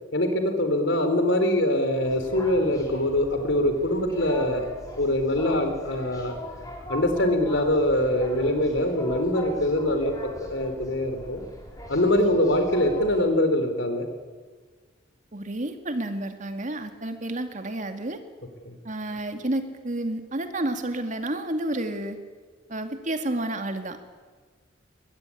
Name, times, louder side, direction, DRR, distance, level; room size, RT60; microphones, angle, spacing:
voice 1, 0.1-4.7 5.0-6.4 6.9-10.1 10.5-11.4 11.9-14.1 18.6-18.8, left 1 dB, 70° left, 7 dB, 3.9 m, -23 dB
sound 1, 2.0-13.2, equal, 20° left, 5.4 m, -41 dB
voice 2, 15.3-18.2 18.8-22.2 22.7-24.0, right 1 dB, 40° right, 7 dB, 2.3 m, -30 dB
22.5 x 20.5 x 9.9 m, 1.5 s
head